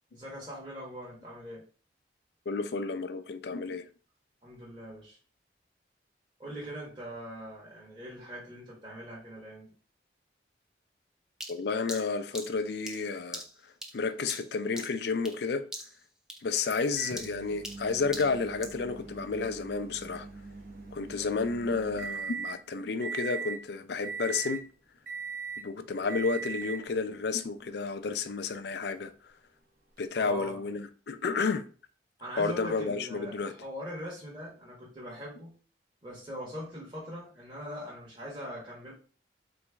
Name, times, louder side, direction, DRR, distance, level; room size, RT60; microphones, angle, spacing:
voice 1, 0.1-1.6 4.4-5.2 6.4-9.7 21.2-21.3 30.2-30.6 32.2-35.5 36.0-38.9, equal, 30° right, 1.2 m, -42 dB
voice 2, 2.5-3.9 11.5-13.4 13.9-15.7 16.4-20.3 20.9-24.7 25.6-29.1 30.0-31.7 32.4-33.5, left 4 dB, 65° left, 0.4 m, -31 dB
sound 1, 11.4-15.5 15.7-16.0 16.3-18.8, equal, 5° right, 0.5 m, -43 dB
Microwave oven, 17.0-22.6 23.0-23.6 24.0-24.7 25.1-25.7 26.1-26.9 27.9-28.0 30.0-30.1, right 5 dB, 55° right, 1.0 m, -40 dB
4.0 x 3.1 x 3.4 m
head